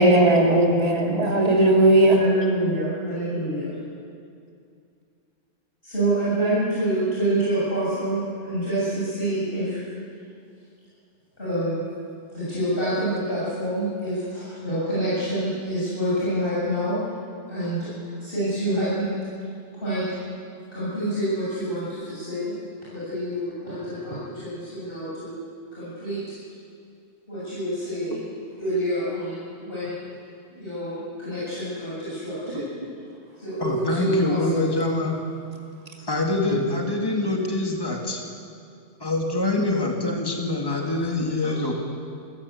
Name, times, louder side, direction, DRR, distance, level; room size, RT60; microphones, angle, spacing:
voice 1, 0.0-2.2, right 1 dB, 30° right, -1 dB, 2.8 m, -17 dB
voice 2, 0.7-1.2 2.1-3.6 5.8-9.8 11.4-11.8 12.3-17.0 17.5-19.1 19.7-20.0 20.7-22.5 22.9-25.3 25.7-26.2 27.3-28.2 28.6-30.0 30.5-32.6 33.4-34.7 40.7-40.8 41.4-41.7, right 1 dB, 50° left, -10 dB, 7.3 m, -27 dB
voice 3, 33.6-35.2 36.1-38.2 39.0-41.7, left 2 dB, 20° left, 1 dB, 2.4 m, -25 dB
25.0 x 17.0 x 8.4 m, 2.4 s
omnidirectional pair, 1.2 m